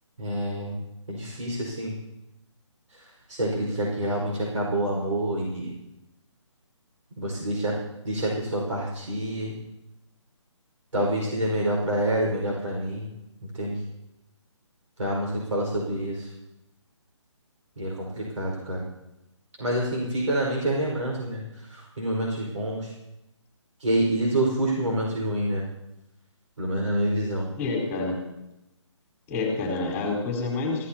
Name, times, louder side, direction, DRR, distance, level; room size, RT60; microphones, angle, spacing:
voice 1, 0.2-0.8 1.1-1.9 3.3-5.7 7.2-7.7 8.0-9.6 10.9-13.1 13.6-13.8 15.0-16.2 17.8-18.8 19.6-21.4 22.0-22.9 23.8-25.6 26.6-27.5, right 1 dB, 80° right, -3 dB, 5.1 m, -27 dB
voice 2, 27.6-28.2 29.3-30.9, left 3 dB, 15° left, -1 dB, 4.5 m, -28 dB
22.5 x 16.0 x 2.9 m, 0.89 s
figure-of-eight pair, 155°, 16 cm